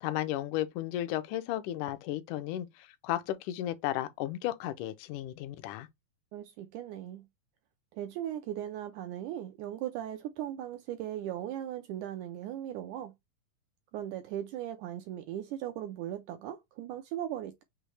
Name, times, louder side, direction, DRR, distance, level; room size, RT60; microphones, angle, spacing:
voice 1, 0.0-5.9, left 13 dB, 75° left, 1.9 m, -34 dB
voice 2, 6.3-7.2 7.9-13.1 13.9-17.6, right 11 dB, 85° right, 1.7 m, -38 dB
6.3 x 2.7 x 3.1 m
omnidirectional pair, 4.1 m